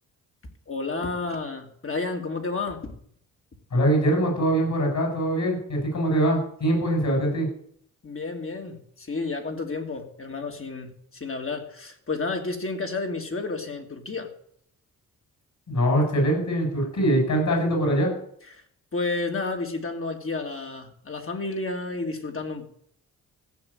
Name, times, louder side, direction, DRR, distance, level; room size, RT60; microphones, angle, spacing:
voice 1, 0.7-2.9 8.0-14.3 18.5-18.6 18.9-22.7, left 3 dB, 40° left, 3 dB, 2.8 m, -31 dB
voice 2, 3.7-7.5 15.7-18.1, right 1 dB, 55° left, 1 dB, 7.7 m, -23 dB
15.0 x 6.1 x 8.9 m, 0.65 s
cardioid pair, 70°, 35 cm